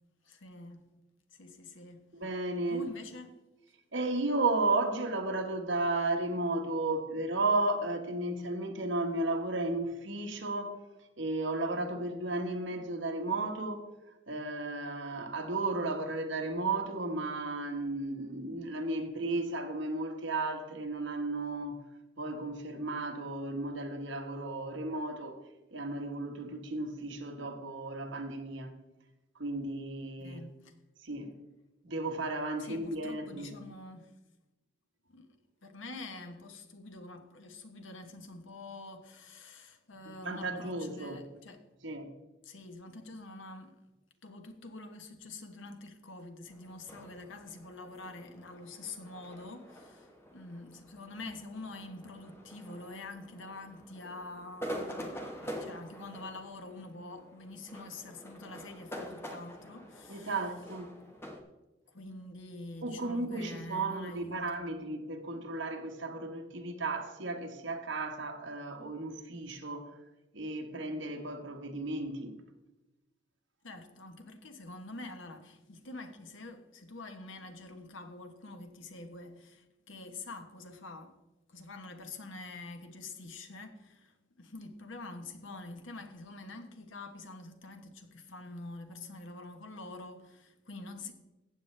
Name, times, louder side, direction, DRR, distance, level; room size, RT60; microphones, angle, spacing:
voice 1, 0.2-0.9 1.3-2.1 2.7-3.4 30.2-30.7 32.6-34.1 35.1-35.3 35.6-41.6 42.4-43.7 44.2-60.3 61.9-64.5 73.6-81.2 81.5-91.1, left 2 dB, 75° left, 1.2 m, -46 dB
voice 2, 2.1-2.8 3.9-13.9 14.3-21.8 22.2-25.4 25.7-28.7 29.3-30.4 31.0-31.3 31.8-33.6 40.0-41.2 41.8-42.1 60.1-60.9 62.8-69.9 70.3-72.4, right 2 dB, 70° right, 1.4 m, -34 dB
sound 1, 46.5-61.4, equal, 10° left, 1.1 m, -46 dB
14.5 x 8.5 x 3.3 m
head